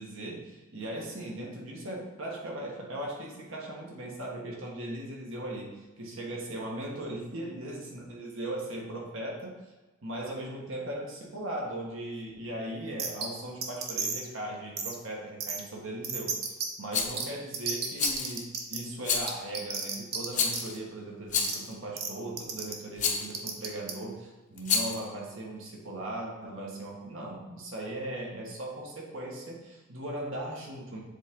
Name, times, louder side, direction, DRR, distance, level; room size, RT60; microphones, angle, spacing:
voice 1, 0.0-9.6 10.0-16.4 16.8-31.0, right 1 dB, 80° right, -2 dB, 1.5 m, -38 dB
sound 1, 13.0-13.3 13.6-14.3 14.8-14.9 15.4-15.6 16.0-16.7 17.2-17.3 17.5-18.8 19.3-20.3 20.5-20.6 21.4-21.6 22.0-22.1 22.4-22.7 23.3-23.9, right 6 dB, 50° right, 0.8 m, -32 dB
Rattle, 16.9-17.2 18.0-18.4 19.0-19.4 20.3-20.8 21.3-21.7 23.0-23.3 24.6-25.0, left 6 dB, 35° left, 0.6 m, -29 dB
7.4 x 3.9 x 3.7 m, 1.2 s
head